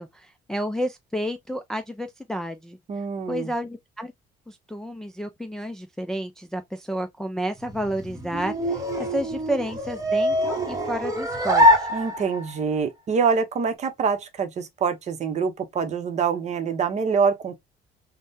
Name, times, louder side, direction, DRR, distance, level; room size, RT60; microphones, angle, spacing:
voice 1, 0.0-2.8 3.3-4.1 4.5-11.9, equal, 5° left, 0.3 m, -31 dB
voice 2, 2.9-3.5 11.9-17.6, right 6 dB, 45° right, 0.7 m, -25 dB
sound 1, 7.6-12.6, left 1 dB, 20° right, 1.0 m, -24 dB
3.5 x 2.1 x 2.6 m
cardioid pair, 110°, 17 cm